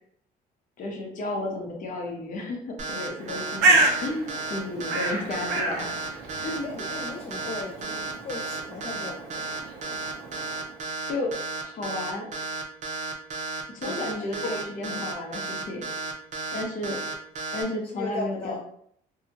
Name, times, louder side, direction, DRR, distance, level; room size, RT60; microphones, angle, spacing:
voice 1, 0.8-6.0 6.4-6.7 11.0-11.3 11.6-12.3 13.7-15.9 16.5-17.0 17.5-18.6, left 2 dB, 50° left, 0 dB, 0.9 m, -32 dB
sound 1, 2.8-17.6, right 3 dB, 45° right, 0.6 m, -33 dB
Bird, 3.1-10.7, right 2 dB, 85° right, 0.6 m, -29 dB
voice 2, 6.6-9.5 13.8-14.5 17.9-18.6, left 3 dB, 35° left, -1 dB, 0.4 m, -37 dB
2.8 x 2.3 x 2.7 m, 0.66 s
cardioid pair, 110°, 17 cm